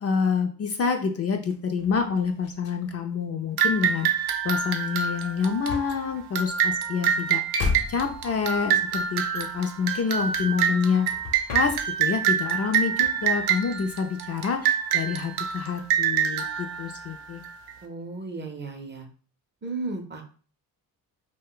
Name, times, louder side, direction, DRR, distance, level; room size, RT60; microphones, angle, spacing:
voice 1, 0.0-7.4 7.9-11.1 11.5-17.4, left 6 dB, 40° left, 4 dB, 0.4 m, -27 dB
sound 1, 1.5-10.8 11.1-12.3 12.6-14.1, left 4 dB, 65° left, 0.8 m, -37 dB
sound 2, 3.6-17.7, right 8 dB, 70° right, 0.6 m, -26 dB
voice 2, 17.8-19.1 19.6-20.2, right 3 dB, 30° right, 4 dB, 0.6 m, -34 dB
2.5 x 2.2 x 3.7 m, 0.41 s
cardioid pair, 90°, 39 cm